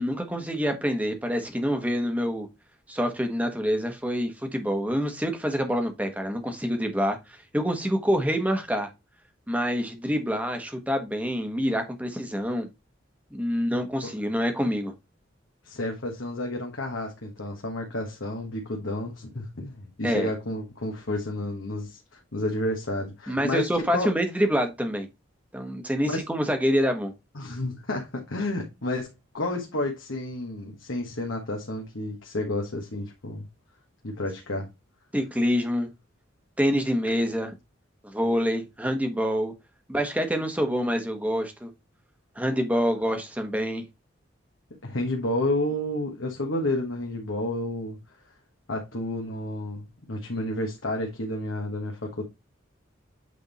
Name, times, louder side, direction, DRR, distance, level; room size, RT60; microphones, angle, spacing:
voice 1, 0.0-2.5 2.9-7.2 7.5-8.9 9.5-12.7 13.3-14.9 20.0-20.3 23.3-25.1 25.5-27.1 35.1-35.9 36.6-37.5 38.0-39.5 39.9-41.7 42.4-43.8, equal, 10° right, 1.1 m, -26 dB
voice 2, 15.6-24.1 26.0-26.2 27.3-33.5 34.0-34.7 44.8-48.0 48.7-52.2, left 1 dB, 80° left, 1.4 m, -31 dB
8.3 x 3.6 x 4.0 m
head